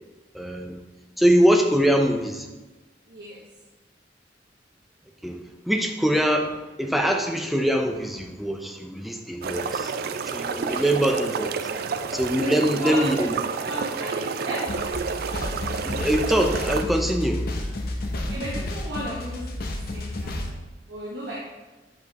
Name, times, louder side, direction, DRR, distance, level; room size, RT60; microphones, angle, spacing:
voice 1, 0.3-0.8 1.2-2.5 5.2-5.4 5.7-6.5 6.8-9.9 10.3-11.5 12.1-13.3 15.8-17.5, equal, ahead, 3 dB, 0.5 m, -23 dB
voice 2, 3.1-3.4 10.5-10.8 12.4-13.2 13.6-14.6 18.1-20.4 20.9-21.4, right 1 dB, 75° right, -6 dB, 1.1 m, -34 dB
sound 1, 9.4-16.8, right 5 dB, 55° right, 0.3 m, -30 dB
sound 2, 14.7-20.5, left 1 dB, 55° left, 0.7 m, -31 dB
6.9 x 6.0 x 2.9 m, 1.2 s
head